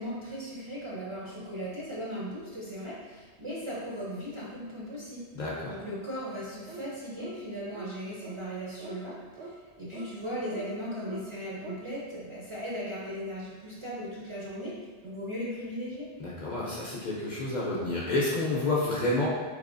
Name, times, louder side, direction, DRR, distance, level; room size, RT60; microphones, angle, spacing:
voice 1, 0.0-5.2 5.7-9.2 9.5-14.7 15.0-16.1, equal, 35° right, -8 dB, 0.6 m, -37 dB
voice 2, 5.3-5.7 16.2-19.3, left 2 dB, 50° left, -6 dB, 0.6 m, -29 dB
sound 1, 6.7-6.9 7.2-7.4 7.7-7.9 8.2-8.4 8.8-9.0 9.4-9.5 9.9-10.1 10.5-10.7 11.0-11.2 11.6-11.8, right 3 dB, 75° right, 0.9 m, -44 dB
4.0 x 3.3 x 2.5 m, 1.4 s
omnidirectional pair, 1.2 m